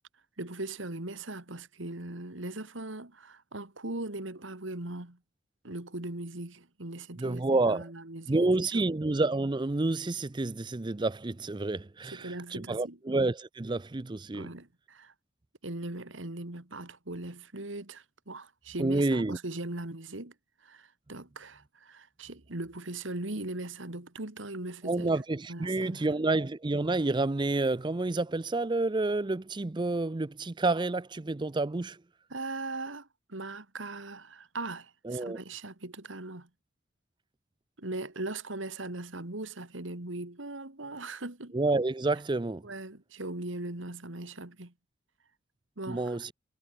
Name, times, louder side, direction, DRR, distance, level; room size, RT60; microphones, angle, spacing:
voice 1, 0.4-5.2 5.6-8.9 12.1-13.0 14.3-15.1 15.6-20.3 20.6-25.1 25.5-26.1 32.3-36.5 37.8-41.5 42.6-44.7 45.8-46.2, right 2 dB, 70° right, 2.4 m, -39 dB
voice 2, 7.2-7.8 8.3-14.5 18.8-19.4 24.8-32.0 35.0-35.4 41.5-42.6 45.9-46.3, right 2 dB, 25° right, 0.5 m, -29 dB
head